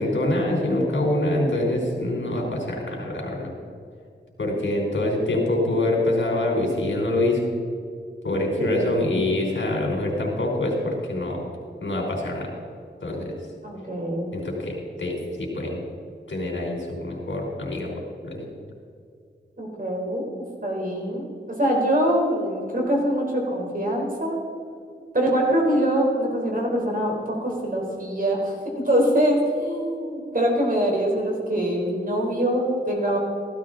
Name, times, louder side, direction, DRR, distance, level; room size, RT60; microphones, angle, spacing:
voice 1, 0.0-3.5 4.4-7.4 8.2-11.5 11.8-12.5 13.0-13.4 14.3-15.9 16.3-18.5, left 1 dB, 80° left, -2 dB, 3.4 m, -25 dB
voice 2, 8.6-9.0 13.6-14.3 19.6-21.3 21.6-24.4 25.1-33.2, equal, 45° right, -1 dB, 3.7 m, -24 dB
14.5 x 13.0 x 3.9 m, 2.4 s
wide cardioid pair, 65°, 19 cm